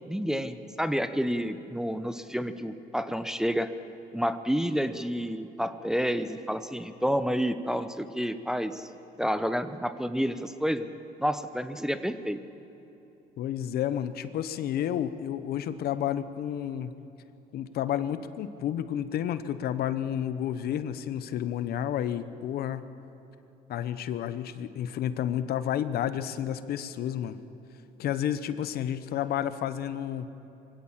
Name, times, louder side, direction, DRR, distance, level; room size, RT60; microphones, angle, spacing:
voice 1, 0.1-3.7 4.1-8.9 9.2-10.9 11.2-12.4, equal, 5° right, 10 dB, 0.8 m, -29 dB
voice 2, 13.4-16.9 17.5-22.8 23.7-27.4 28.0-30.3, left 10 dB, 65° left, 13 dB, 1.0 m, -31 dB
22.5 x 16.5 x 7.4 m, 3.0 s
cardioid pair, 110°, 17 cm